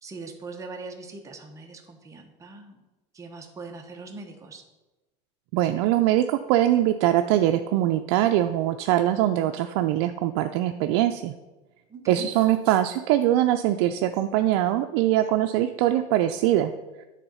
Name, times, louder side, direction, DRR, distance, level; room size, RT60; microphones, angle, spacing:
voice 1, 0.0-2.8 3.1-4.6 11.9-12.3, right 3 dB, 20° right, 3 dB, 1.1 m, -41 dB
voice 2, 5.5-11.3 12.1-16.7, right 13 dB, 75° right, 6 dB, 0.4 m, -22 dB
9.9 x 3.9 x 5.6 m, 1.1 s
supercardioid pair, 130°, 15 cm